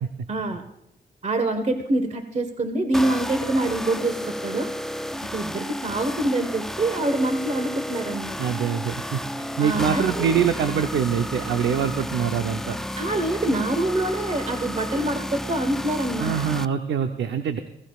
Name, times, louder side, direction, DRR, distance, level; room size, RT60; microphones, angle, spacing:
voice 1, 0.3-0.6 1.2-4.7 5.3-8.4 9.6-10.4 13.0-16.3, right 2 dB, 40° right, 7 dB, 1.3 m, -25 dB
sound 1, 2.9-16.6, equal, ahead, 0.4 m, -32 dB
voice 2, 8.4-12.8 16.2-17.6, right 8 dB, 90° right, 7 dB, 0.8 m, -24 dB
21.0 x 16.0 x 2.4 m, 0.80 s
cardioid pair, 90°, 18 cm